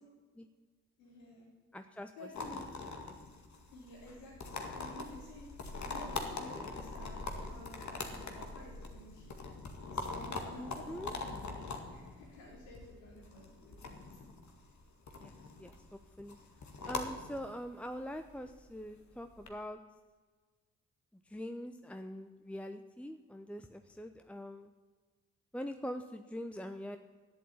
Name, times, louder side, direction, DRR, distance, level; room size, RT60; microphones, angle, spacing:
voice 1, 1.0-1.5 2.2-2.7 3.7-9.4 9.9-11.5 11.9-14.0, left 2 dB, 85° left, -2 dB, 3.4 m, -52 dB
voice 2, 1.7-2.9 10.6-11.1 15.1-16.4 16.9-19.8 21.1-24.7 25.5-27.0, equal, 5° left, 7 dB, 0.9 m, -44 dB
sound 1, 2.3-19.5, left 3 dB, 55° left, 2.1 m, -43 dB
11.0 x 8.6 x 8.7 m, 1.4 s
hypercardioid pair, 40°, 34 cm